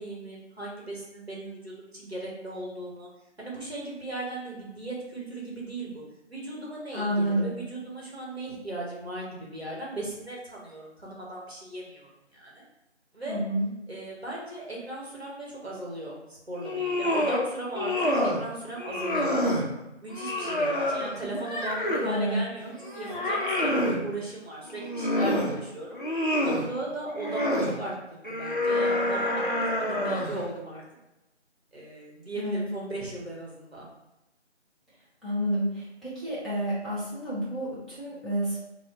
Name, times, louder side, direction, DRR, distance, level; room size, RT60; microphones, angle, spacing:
voice 1, 0.0-3.1 3.4-6.0 6.3-12.6 13.1-13.4 13.9-19.4 20.0-26.0 26.4-29.4 29.8-30.8 31.7-33.9, right 2 dB, 60° right, -4 dB, 1.0 m, -37 dB
voice 2, 6.9-7.5 13.3-13.7 22.0-22.4 32.4-32.7 35.2-38.6, right 1 dB, ahead, -12 dB, 0.6 m, -29 dB
sound 1, 16.5-17.4 17.7-18.4 18.8-19.7 20.1-22.2 22.6-24.0 24.7-25.5 25.9-26.7 27.1-27.7 28.2-30.4, left 1 dB, 45° left, 0.5 m, -27 dB
3.1 x 2.1 x 3.6 m, 0.95 s
figure-of-eight pair, 170°, 36 cm